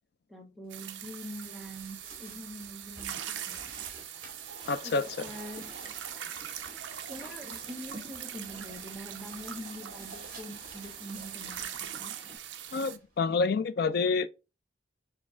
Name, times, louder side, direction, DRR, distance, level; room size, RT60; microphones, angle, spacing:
voice 1, 0.3-3.7 4.8-5.7 7.1-12.2, equal, ahead, 0.8 m, -44 dB
sound 1, 0.7-13.0, right 10 dB, 65° right, 0.5 m, -42 dB
sound 2, 0.8-13.3, right 3 dB, 45° right, 1.9 m, -52 dB
sound 3, 4.5-12.4, right 1 dB, 25° right, 1.8 m, -52 dB
voice 2, 4.7-5.0 12.7-14.3, left 4 dB, 55° left, 0.4 m, -27 dB
6.3 x 2.3 x 3.5 m
head